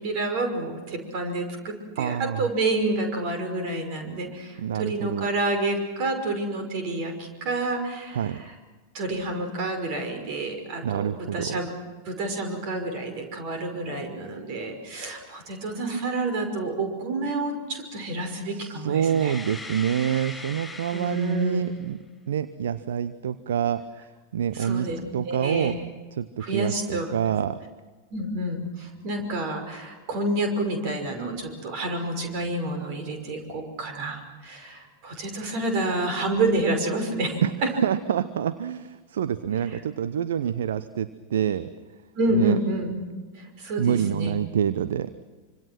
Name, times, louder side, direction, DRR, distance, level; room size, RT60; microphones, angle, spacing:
voice 1, 0.0-8.5 8.9-11.7 12.0-19.4 20.9-21.6 24.5-25.0 25.2-25.8 26.4-27.1 28.1-37.4 42.1-42.9 43.3-44.4, right 2 dB, 45° right, 5 dB, 5.7 m, -29 dB
voice 2, 2.0-2.5 4.6-5.3 8.1-8.4 10.8-11.6 18.4-25.8 26.1-27.6 37.4-41.7 42.3-42.6 43.8-45.1, right 9 dB, 60° right, 14 dB, 0.8 m, -27 dB
sound 1, 19.0-21.8, left 3 dB, 5° left, 5.8 m, -40 dB
26.5 x 26.0 x 6.1 m, 1.4 s
figure-of-eight pair, 90°, 0 cm